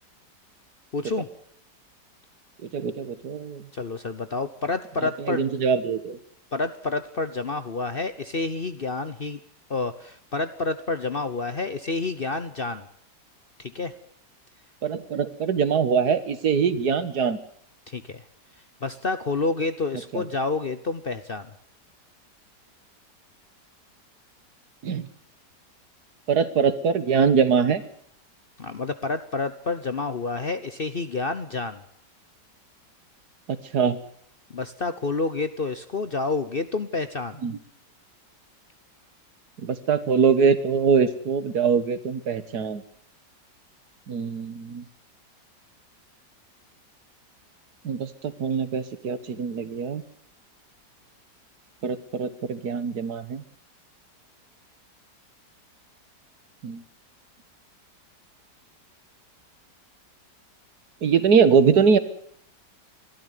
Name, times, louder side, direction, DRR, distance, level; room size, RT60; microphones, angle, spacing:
voice 1, 0.9-1.3 3.7-5.4 6.5-9.4 9.7-12.9 13.6-13.9 17.9-18.2 18.8-21.5 28.6-31.8 34.5-37.4, left 3 dB, 40° left, 11 dB, 0.9 m, -29 dB
voice 2, 2.7-3.6 5.3-6.2 14.8-17.4 20.1-20.2 24.8-25.1 26.3-27.8 33.7-34.0 37.4-37.6 39.6-42.8 44.1-44.8 47.8-50.0 51.8-53.4 56.6-56.8 61.0-62.0, right 6 dB, 65° right, 13 dB, 1.9 m, -22 dB
21.5 x 13.5 x 9.3 m, 0.65 s
omnidirectional pair, 1.8 m